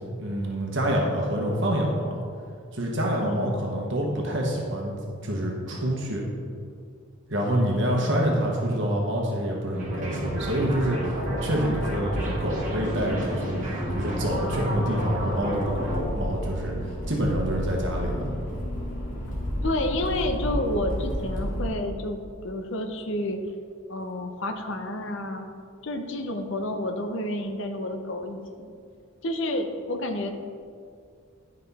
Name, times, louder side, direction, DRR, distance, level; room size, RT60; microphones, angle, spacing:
voice 1, 0.2-2.2 2.7-4.9 5.2-6.2 7.3-11.0 11.3-18.3, equal, 55° right, -1 dB, 1.1 m, -27 dB
voice 2, 3.2-3.6 19.6-23.4 23.9-25.5 25.8-28.7 29.2-30.3, left 1 dB, 55° left, 5 dB, 0.7 m, -30 dB
sound 1, 9.7-16.0, equal, 35° right, 2.1 m, -31 dB
Accelerating revving vroom, 11.2-21.7, equal, 35° left, 1.5 m, -33 dB
10.5 x 5.3 x 4.1 m, 2.2 s
head